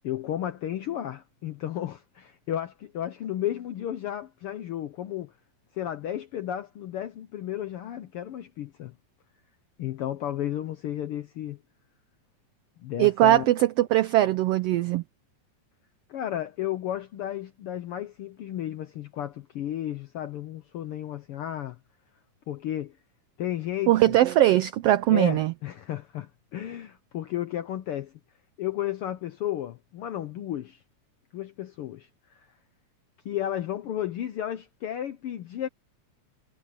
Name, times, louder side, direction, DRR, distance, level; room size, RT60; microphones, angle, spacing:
voice 1, 0.0-5.3 5.7-8.9 9.8-11.6 12.8-13.5 16.1-21.8 22.5-23.0 23.4-24.1 25.1-28.1 28.6-30.8 31.3-32.5 33.2-35.7, left 11 dB, 75° left, 1.3 m, -33 dB
voice 2, 13.0-15.0 23.9-25.5, right 14 dB, 85° right, 1.3 m, -21 dB
omnidirectional pair, 3.4 m